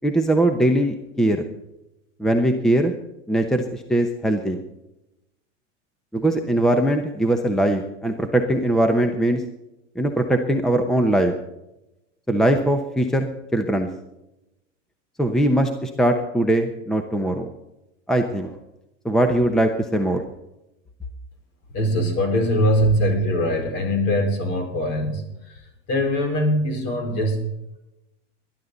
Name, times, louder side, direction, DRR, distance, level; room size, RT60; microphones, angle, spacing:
voice 1, 0.0-1.4 2.2-2.9 3.3-4.6 6.1-9.4 10.0-11.3 12.3-13.9 15.2-17.5 18.1-18.6 19.0-20.2, right 1 dB, ahead, 6 dB, 0.8 m, -21 dB
voice 2, 21.7-27.8, equal, 45° left, 4 dB, 4.9 m, -22 dB
19.5 x 11.5 x 4.0 m, 0.91 s
supercardioid pair, 150°, 36 cm